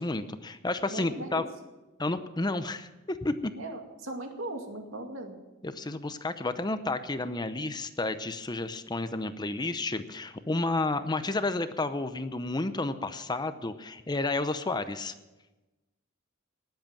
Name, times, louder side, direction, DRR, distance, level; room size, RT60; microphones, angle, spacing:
voice 1, 0.0-1.5 2.0-3.5 5.6-15.1, left 2 dB, 20° left, 11 dB, 0.7 m, -31 dB
voice 2, 0.9-1.4 3.6-5.4, right 2 dB, 80° right, 4 dB, 2.3 m, -38 dB
19.5 x 7.9 x 7.2 m, 1.1 s
head